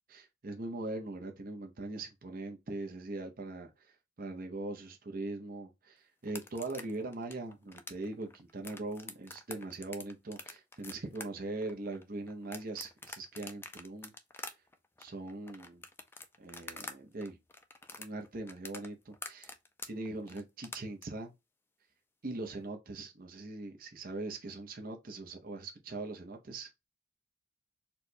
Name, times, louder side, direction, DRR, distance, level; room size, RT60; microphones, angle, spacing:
voice 1, 0.1-14.1 14.4-14.6 15.0-15.8 16.4-17.4 18.0-19.5 19.9-21.3 22.2-26.7, right 2 dB, 45° right, 0.7 m, -41 dB
sound 1, 6.2-17.0 17.2-21.0, left 3 dB, 10° left, 0.4 m, -46 dB
4.3 x 2.2 x 2.6 m
head